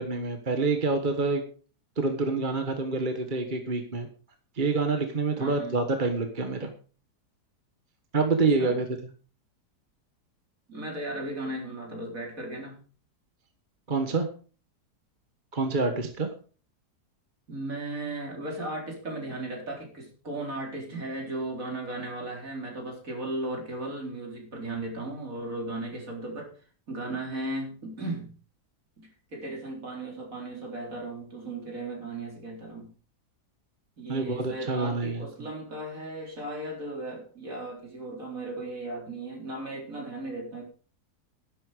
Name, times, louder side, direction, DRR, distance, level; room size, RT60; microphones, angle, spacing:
voice 1, 0.0-1.4 2.0-4.1 4.6-6.7 8.1-8.8 13.9-14.3 15.5-16.3 34.1-35.2, right 3 dB, 30° right, 5 dB, 1.5 m, -27 dB
voice 2, 5.4-5.8 8.5-8.8 10.7-12.8 17.5-28.3 29.0-32.9 34.0-40.6, right 2 dB, 55° right, 1 dB, 4.4 m, -36 dB
12.0 x 11.0 x 5.0 m, 0.39 s
omnidirectional pair, 1.7 m